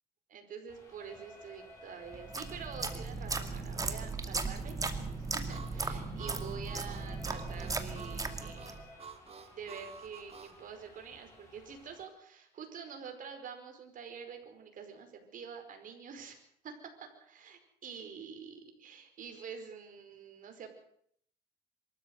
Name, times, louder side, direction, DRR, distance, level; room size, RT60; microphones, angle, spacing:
voice 1, 0.3-4.8 5.3-8.8 9.6-16.4 16.6-20.7, right 6 dB, 55° right, 5 dB, 5.0 m, -47 dB
sound 1, 0.7-12.1, left 1 dB, 15° left, 7.8 m, -56 dB
sound 2, 2.1-8.8, right 3 dB, 20° right, 2.3 m, -37 dB
Harmonica, 5.5-10.6, right 6 dB, 35° right, 2.1 m, -50 dB
24.0 x 13.5 x 7.9 m, 0.67 s
cardioid pair, 110°, 17 cm